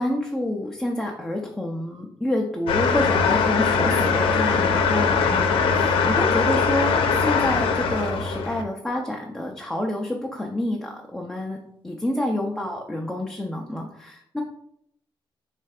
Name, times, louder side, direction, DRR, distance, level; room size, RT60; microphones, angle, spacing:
voice 1, 0.0-11.6 11.8-14.4, left 1 dB, 5° left, -1 dB, 0.5 m, -28 dB
sound 1, 2.7-8.6, left 5 dB, 85° left, 0.6 m, -21 dB
3.3 x 3.3 x 4.9 m, 0.72 s
cardioid pair, 145°, 9 cm